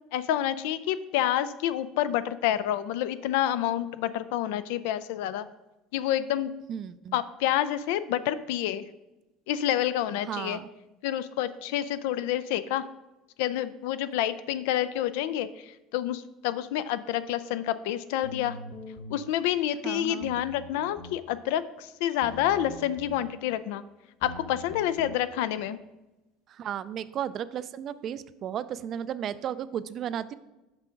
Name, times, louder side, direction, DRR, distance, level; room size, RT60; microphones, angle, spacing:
voice 1, 0.1-5.5 5.9-6.5 7.1-8.8 9.5-10.6 11.0-12.9 13.4-18.6 19.1-23.8 24.2-25.8, left 12 dB, 85° left, 13 dB, 0.3 m, -28 dB
voice 2, 6.7-7.2 10.3-10.7 19.8-20.3 26.5-30.3, right 9 dB, 40° right, 15 dB, 0.3 m, -34 dB
sound 1, 18.2-19.2 20.2-21.2 22.2-23.2 24.2-25.2, left 1 dB, 45° left, 0.9 m, -43 dB
6.0 x 5.6 x 5.1 m, 1.0 s
cardioid pair, 150°, 0 cm